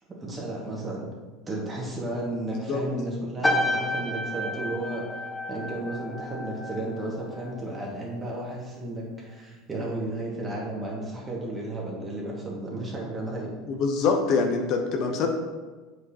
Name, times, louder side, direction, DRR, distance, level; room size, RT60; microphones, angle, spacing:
voice 1, 0.2-1.1 1.5-5.0 5.5-13.5, right 1 dB, 25° right, -3 dB, 2.0 m, -33 dB
sound 1, 3.4-8.0 8.3-8.7, left 1 dB, 15° left, 0.9 m, -31 dB
voice 2, 13.7-15.3, left 4 dB, 55° left, 3 dB, 0.8 m, -24 dB
7.8 x 4.9 x 2.9 m, 1.3 s
hypercardioid pair, 80°, 0 cm